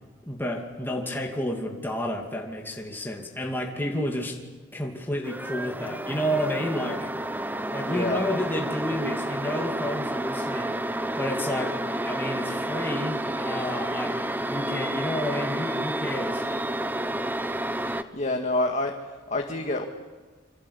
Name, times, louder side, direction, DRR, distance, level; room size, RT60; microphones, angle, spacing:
voice 1, 0.3-4.4 4.7-7.4 7.7-10.8 11.2-16.4, left 1 dB, 10° left, 0 dB, 2.6 m, -31 dB
sound 1, 5.2-18.0, right 1 dB, 10° right, 0.9 m, -30 dB
voice 2, 7.8-8.2 17.8-18.9 19.3-19.9, left 2 dB, 40° left, 3 dB, 2.0 m, -27 dB
27.5 x 26.0 x 8.5 m, 1.4 s
head